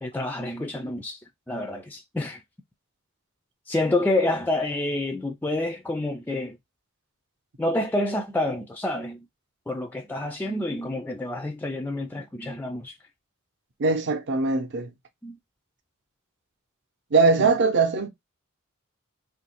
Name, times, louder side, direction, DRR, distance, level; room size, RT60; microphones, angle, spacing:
voice 1, 0.0-2.4 3.7-6.6 7.6-9.3 9.7-13.0 15.2-15.4 17.4-17.6, left 1 dB, 10° left, 0.3 m, -28 dB
voice 2, 13.8-14.9 17.1-18.1, right 4 dB, 55° right, 0.7 m, -21 dB
2.7 x 2.6 x 4.2 m
head